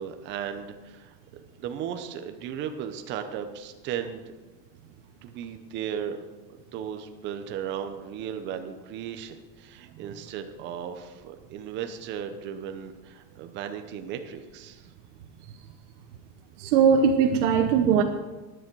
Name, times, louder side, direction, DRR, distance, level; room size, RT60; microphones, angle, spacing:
voice 1, 0.0-4.2 5.2-6.2 6.7-14.9, right 8 dB, 30° right, 7 dB, 0.8 m, -36 dB
voice 2, 16.6-18.0, right 7 dB, 75° right, 4 dB, 1.1 m, -20 dB
14.5 x 10.0 x 4.7 m, 1.2 s
cardioid pair, 175°, 37 cm